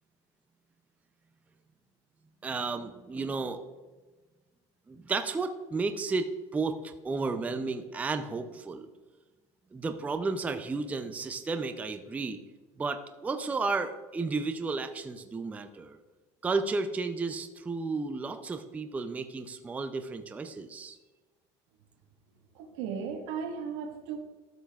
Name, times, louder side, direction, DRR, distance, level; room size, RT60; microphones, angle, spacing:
voice 1, 2.4-3.6 4.9-6.3 6.5-8.9 9.7-12.4 12.8-16.0 16.4-21.0, right 3 dB, 10° right, 7 dB, 0.4 m, -33 dB
voice 2, 22.5-24.2, right 6 dB, 80° right, 4 dB, 1.4 m, -36 dB
13.0 x 7.0 x 2.3 m, 1.2 s
cardioid pair, 145°, 14 cm